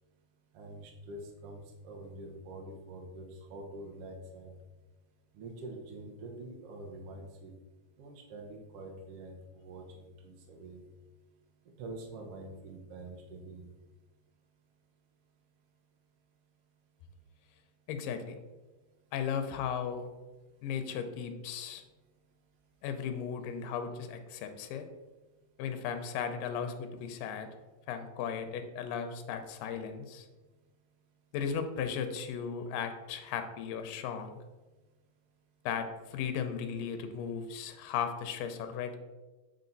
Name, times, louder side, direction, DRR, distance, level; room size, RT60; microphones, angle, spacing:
voice 1, 0.5-4.6 5.3-7.5 8.0-10.9 11.8-13.7, right 2 dB, 65° right, 0 dB, 1.5 m, -46 dB
voice 2, 17.9-18.4 19.1-20.1 20.6-21.8 22.8-24.9 25.6-27.5 27.9-30.3 31.3-34.4 35.7-39.0, left 7 dB, 90° left, 8 dB, 2.4 m, -36 dB
8.2 x 4.3 x 4.0 m, 1.2 s
omnidirectional pair, 3.8 m